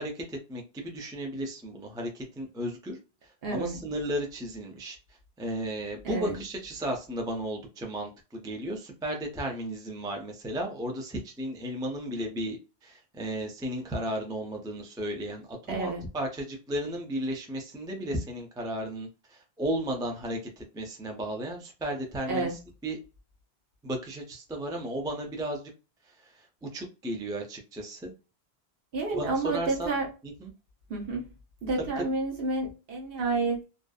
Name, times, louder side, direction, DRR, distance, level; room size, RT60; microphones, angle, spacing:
voice 1, 0.0-23.0 23.8-25.6 26.1-28.1 29.1-29.9 30.2-30.5 31.8-31.9, right 1 dB, 5° right, 0.3 m, -34 dB
voice 2, 3.4-3.8 6.0-6.4 15.7-16.0 22.3-22.6 28.9-30.1 30.9-31.2 31.6-33.6, right 3 dB, 65° right, 1.0 m, -30 dB
2.6 x 2.2 x 2.3 m
omnidirectional pair, 1.1 m